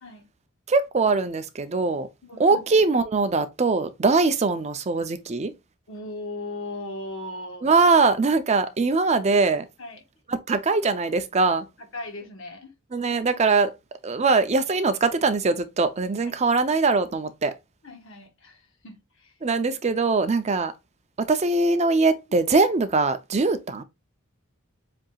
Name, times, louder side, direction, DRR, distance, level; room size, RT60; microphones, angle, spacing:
voice 1, 0.7-2.1 2.4-5.5 7.6-9.6 10.5-11.7 12.9-13.7 14.0-17.5 19.4-20.7 21.2-23.8, right 3 dB, 30° right, 0.5 m, -22 dB
voice 2, 2.3-2.6 5.9-7.7 9.8-10.0 11.9-12.7 16.2-16.3 17.8-19.4, left 2 dB, 65° left, 1.2 m, -37 dB
7.4 x 2.8 x 2.3 m
head